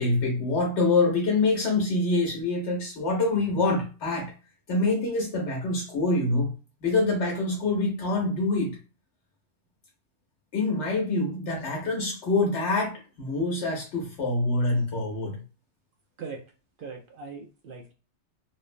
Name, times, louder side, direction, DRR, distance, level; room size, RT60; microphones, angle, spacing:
voice 1, 0.0-4.3 4.7-6.5 6.8-8.8 10.5-15.4, left 2 dB, 75° left, -1 dB, 1.0 m, -25 dB
voice 2, 16.8-17.9, right 5 dB, 60° right, 1 dB, 0.6 m, -40 dB
3.1 x 2.0 x 2.5 m, 0.33 s
omnidirectional pair, 1.2 m